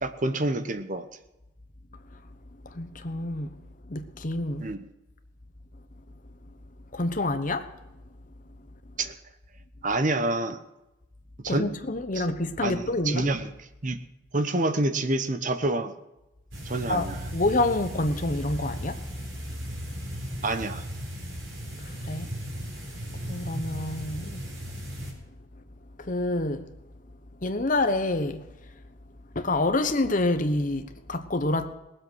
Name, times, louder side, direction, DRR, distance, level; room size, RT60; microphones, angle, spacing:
voice 1, 0.0-1.0 4.6-4.8 9.0-9.1 9.8-10.6 11.4-11.7 12.1-12.3 12.6-13.5 13.8-14.0 14.3-15.9 16.7-17.3 20.4-20.8, right 2 dB, 40° right, 0.9 m, -27 dB
voice 2, 2.7-3.5 3.9-4.7 6.9-7.7 11.5-13.3 16.9-19.0 21.8-22.3 23.3-24.4 26.0-26.7 27.4-28.4 29.3-31.7, left 2 dB, 40° left, 1.0 m, -27 dB
sound 1, 16.5-25.1, equal, 75° right, 3.9 m, -36 dB
19.0 x 7.8 x 6.4 m
head